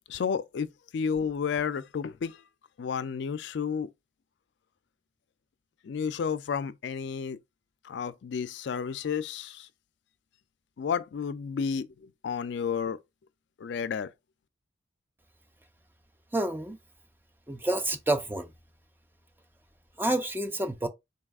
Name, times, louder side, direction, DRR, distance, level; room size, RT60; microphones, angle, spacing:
voice 1, 0.1-0.7 0.9-2.4 2.8-3.9 5.8-7.4 7.8-9.7 10.8-13.0 13.6-14.1, left 6 dB, 65° left, 0.3 m, -31 dB
voice 2, 16.3-16.8 17.5-18.5 20.0-20.9, right 1 dB, 10° right, 0.4 m, -28 dB
4.0 x 2.4 x 3.4 m
head